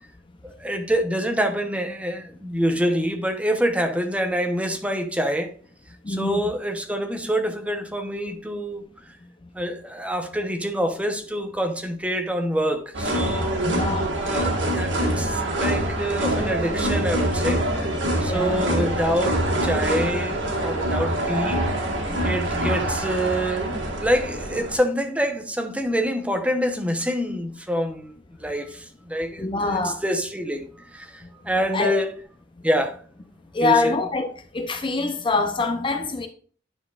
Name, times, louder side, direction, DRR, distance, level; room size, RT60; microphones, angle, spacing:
voice 1, 0.4-5.5 6.1-8.8 9.5-13.7 14.2-17.6 18.2-21.6 22.2-28.1 28.4-32.1 32.6-33.0 33.6-33.9, equal, 5° right, 0.9 m, -26 dB
voice 2, 6.0-6.4 13.6-14.1 18.2-18.6 29.4-30.0 31.7-31.9 33.5-34.3 34.5-36.3, left 3 dB, 25° left, 0.5 m, -24 dB
sound 1, 12.9-24.8, right 1 dB, 90° right, 1.8 m, -25 dB
9.9 x 6.2 x 2.4 m
head